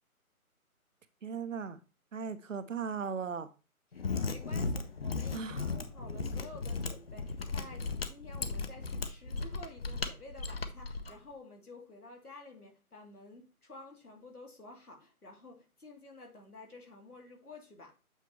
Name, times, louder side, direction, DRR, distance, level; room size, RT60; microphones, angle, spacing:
voice 1, 1.2-1.8 2.1-3.5 5.3-5.7, right 6 dB, 60° right, 0.8 m, -37 dB
voice 2, 3.9-18.0, left 2 dB, 90° left, 2.5 m, -51 dB
Mechanisms, 3.9-11.1, left 4 dB, 45° left, 0.7 m, -36 dB
8.2 x 4.1 x 3.1 m
figure-of-eight pair, 150°, 43 cm